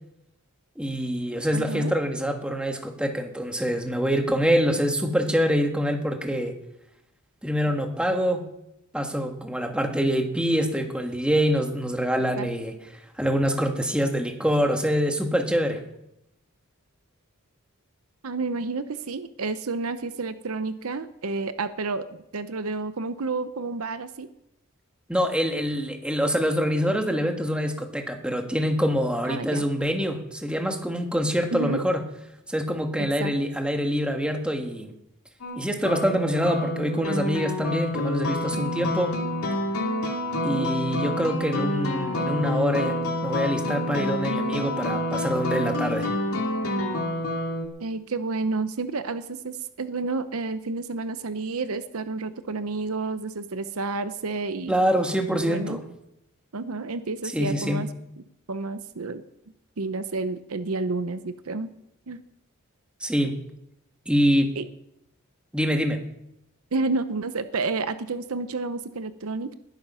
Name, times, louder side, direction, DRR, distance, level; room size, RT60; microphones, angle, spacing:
voice 1, 0.8-6.6 7.4-8.5 8.9-12.8 13.2-15.8 25.1-32.0 32.5-34.9 35.6-39.2 40.4-46.1 54.7-55.8 57.3-57.8 63.0-63.4 64.0-64.5 65.5-66.0, equal, 5° right, 4 dB, 1.6 m, -25 dB
voice 2, 1.5-1.9 12.4-12.5 18.2-22.1 22.3-24.3 29.2-29.6 31.5-31.8 33.0-33.3 40.4-40.7 47.8-54.7 55.5-55.8 56.5-57.9 58.5-59.2 59.8-61.7 62.1-62.2 64.6-64.7 66.7-69.5, right 3 dB, 70° right, 12 dB, 0.8 m, -30 dB
sound 1, 35.4-47.7, left 1 dB, 75° left, 2.6 m, -28 dB
20.5 x 9.1 x 5.6 m, 0.83 s
head